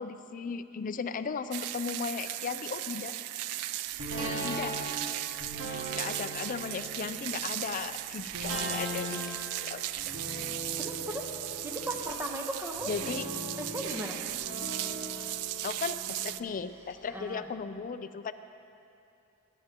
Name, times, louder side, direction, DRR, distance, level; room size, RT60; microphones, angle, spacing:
voice 1, 0.0-3.1 4.4-4.7 5.6-9.8 12.9-13.2 15.6-18.3, left 5 dB, 35° left, 11 dB, 0.4 m, -36 dB
sound 1, 1.5-16.4, right 14 dB, 75° right, 0.3 m, -37 dB
sound 2, 4.0-16.9 17.3-17.4, equal, 60° right, 2.2 m, -40 dB
voice 2, 4.1-4.5 10.8-11.3 11.6-12.9 13.6-14.2 17.1-17.5, equal, 10° right, 1 dB, 1.0 m, -37 dB
19.0 x 11.0 x 3.0 m, 2.6 s
head